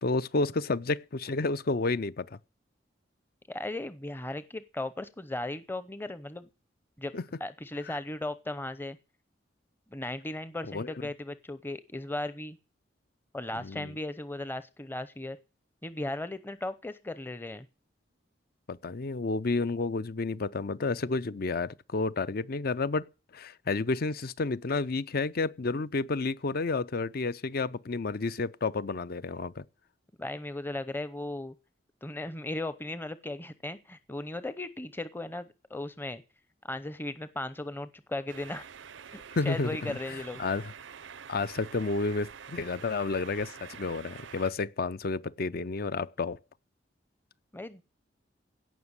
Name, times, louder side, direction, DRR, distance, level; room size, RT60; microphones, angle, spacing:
voice 1, 0.0-2.4 7.1-7.2 10.7-10.9 13.5-13.9 18.7-23.0 23.3-29.6 39.3-40.7 41.3-46.4, left 3 dB, 55° left, 0.6 m, -31 dB
voice 2, 3.5-6.5 7.0-7.1 7.4-9.0 9.9-12.6 13.3-15.4 15.8-17.7 30.2-31.5 32.0-36.2 36.7-38.6 39.1-40.4 47.5-47.8, left 2 dB, 10° left, 0.7 m, -36 dB
sound 1, 38.3-44.5, right 7 dB, 90° right, 0.6 m, -47 dB
17.0 x 6.0 x 8.2 m
head